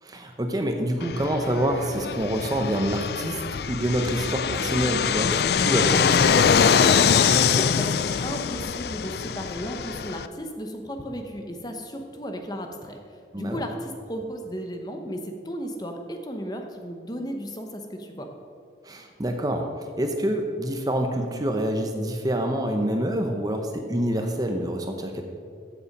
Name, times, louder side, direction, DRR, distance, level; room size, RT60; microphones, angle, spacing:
voice 1, 0.0-6.4 13.3-13.6 18.8-25.2, right 1 dB, 20° right, 4 dB, 0.8 m, -27 dB
Fixed-wing aircraft airplane, 1.0-10.3, left 7 dB, 60° left, 0.4 m, -23 dB
voice 2, 7.0-7.9 8.2-13.0 13.4-18.3, equal, 20° left, 4 dB, 0.9 m, -34 dB
14.5 x 6.9 x 5.3 m, 2.3 s
head